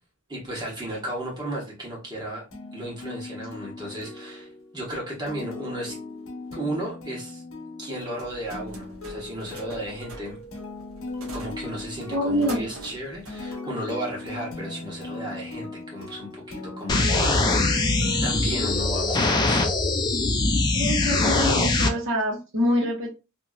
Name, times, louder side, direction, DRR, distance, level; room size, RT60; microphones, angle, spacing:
voice 1, 0.3-2.4 2.7-6.0 6.5-7.4 7.8-10.4 11.3-17.9 18.2-19.6, right 1 dB, 20° right, -4 dB, 1.3 m, -34 dB
sound 1, 2.5-19.2, left 3 dB, 70° left, 1.0 m, -39 dB
sound 2, 8.2-13.6, right 2 dB, 75° right, 0.9 m, -44 dB
voice 2, 12.1-12.7 20.7-23.1, equal, 60° right, -2 dB, 1.3 m, -25 dB
sound 3, 16.9-21.9, left 2 dB, 20° left, 0.4 m, -22 dB
2.9 x 2.8 x 2.3 m, 0.28 s
head